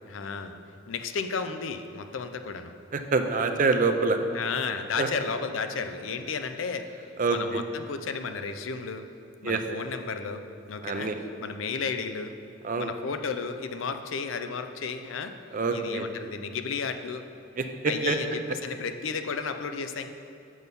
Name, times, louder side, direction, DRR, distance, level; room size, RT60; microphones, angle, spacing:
voice 1, 0.1-0.6 0.9-2.7 4.3-6.9 7.3-9.1 9.4-10.4 10.7-11.1 11.4-12.3 12.8-15.3 15.7-17.2 17.9-20.1, left 5 dB, 80° left, 8 dB, 0.5 m, -33 dB
voice 2, 3.1-4.2 5.0-5.1 7.2-7.6 9.4-9.6 10.8-11.1 12.6-12.9 15.5-16.1 17.6-18.2, right 4 dB, 40° right, 6 dB, 0.5 m, -26 dB
6.9 x 6.3 x 5.3 m, 2.7 s
head